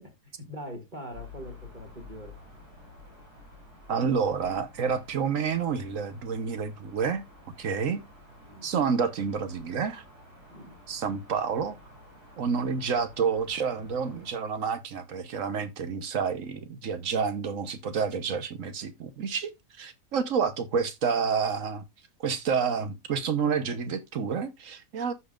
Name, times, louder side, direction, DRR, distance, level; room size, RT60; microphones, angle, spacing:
voice 1, 0.0-2.3 8.4-8.7 10.5-10.8, equal, 30° right, 2.2 m, -43 dB
sound 1, 1.1-14.3, left 2 dB, 80° right, 6.8 m, -51 dB
voice 2, 3.9-7.2 7.6-8.0 8.6-10.0 10.9-11.8 12.4-19.5 19.8-21.8 22.2-25.1, right 6 dB, 55° right, 1.3 m, -29 dB
14.0 x 5.3 x 2.4 m
omnidirectional pair, 1.7 m